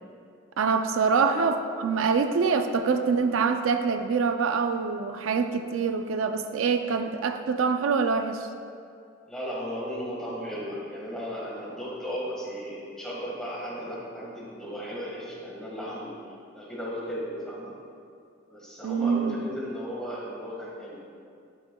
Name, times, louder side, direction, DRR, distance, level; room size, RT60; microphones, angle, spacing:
voice 1, 0.6-8.5 18.8-19.4, right 5 dB, 90° right, 8 dB, 0.4 m, -25 dB
voice 2, 1.1-1.4 9.3-16.1 16.5-17.7 18.5-21.0, equal, 5° left, -6 dB, 1.6 m, -35 dB
11.0 x 7.1 x 2.3 m, 2.4 s
head